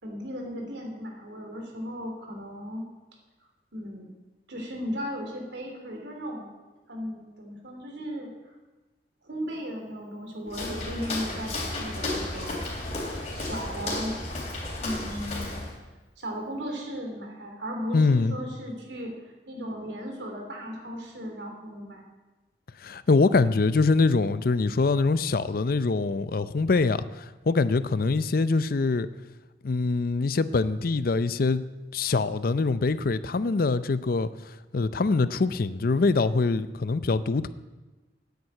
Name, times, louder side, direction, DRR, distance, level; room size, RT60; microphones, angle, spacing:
voice 1, 0.0-2.9 3.7-4.1 4.5-6.5 6.9-8.5 9.2-12.6 13.1-14.2 14.8-15.6 16.2-22.0, equal, 85° right, 3.3 m, -36 dB
Walk footsteps, 10.5-15.8, left 2 dB, 40° left, 3.4 m, -33 dB
voice 2, 17.9-18.4 22.8-29.1 29.6-31.6 31.9-37.5, left 3 dB, 55° left, 0.5 m, -24 dB
9.4 x 9.4 x 8.4 m
head